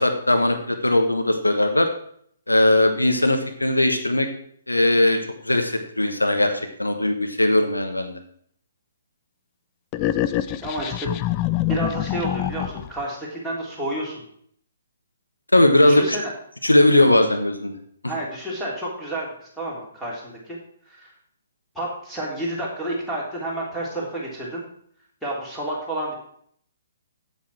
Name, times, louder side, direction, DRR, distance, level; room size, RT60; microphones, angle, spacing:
voice 1, 0.0-1.9 2.5-4.3 4.7-5.2 5.4-6.5 6.8-8.2 15.5-16.2 16.6-17.8, left 1 dB, 85° left, 6 dB, 1.3 m, -19 dB
sound 1, 9.9-13.0, left 13 dB, 25° left, 0.4 m, -25 dB
voice 2, 10.6-11.1 11.7-14.2 15.8-16.3 18.0-20.6 20.9-21.1 21.8-24.6 25.2-26.1, right 1 dB, ahead, -6 dB, 3.3 m, -30 dB
8.3 x 8.2 x 6.0 m, 0.65 s
figure-of-eight pair, 125°, 0 cm